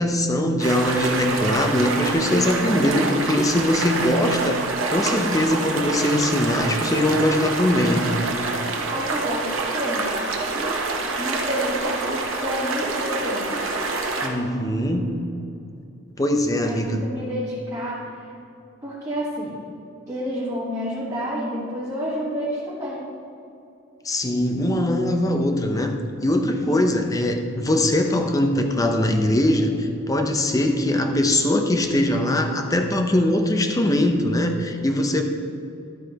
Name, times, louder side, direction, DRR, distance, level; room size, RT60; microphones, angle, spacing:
voice 1, 0.0-8.1 14.2-15.2 16.2-17.0 24.0-26.0 26.2-35.2, left 1 dB, 15° left, 5 dB, 0.6 m, -21 dB
sound 1, 0.6-14.3, right 3 dB, 90° right, 1.0 m, -26 dB
voice 2, 8.9-10.2 11.1-12.0 12.4-13.5 16.6-18.3 18.8-19.5 20.1-23.0 26.6-26.9, equal, 15° right, -8 dB, 1.4 m, -29 dB
11.5 x 8.1 x 2.9 m, 2.6 s
head